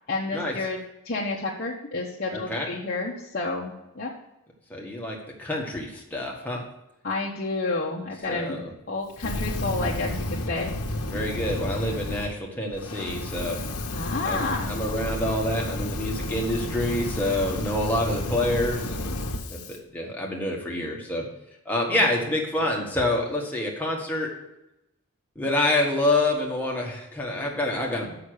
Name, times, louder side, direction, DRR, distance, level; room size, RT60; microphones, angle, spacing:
voice 1, 0.1-0.8 1.0-4.1 7.0-8.6 8.9-10.7 13.9-14.7 21.9-22.0, left 3 dB, 40° left, -4 dB, 0.9 m, -30 dB
voice 2, 2.3-2.7 4.7-6.6 8.3-8.7 11.1-13.6 14.2-19.2 19.5-21.2 21.6-24.3 25.3-28.2, left 1 dB, 10° left, -2 dB, 1.5 m, -27 dB
Fire, 9.1-12.3 12.7-19.8, left 1 dB, 90° left, 1.0 m, -31 dB
7.1 x 5.9 x 6.5 m, 0.88 s
head